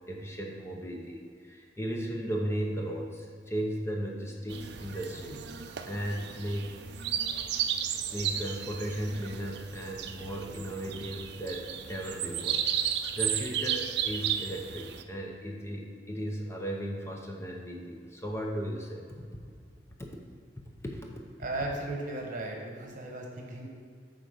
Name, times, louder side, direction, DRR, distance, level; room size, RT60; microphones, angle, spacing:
voice 1, 0.1-5.4 5.8-6.7 8.1-19.0 20.0-20.1 20.8-21.2, equal, 15° left, 0 dB, 0.7 m, -36 dB
sound 1, 4.5-15.0, right 9 dB, 65° right, 0.5 m, -34 dB
voice 2, 21.4-23.7, right 2 dB, 45° right, 0 dB, 1.3 m, -36 dB
9.2 x 3.9 x 5.2 m, 2.1 s
head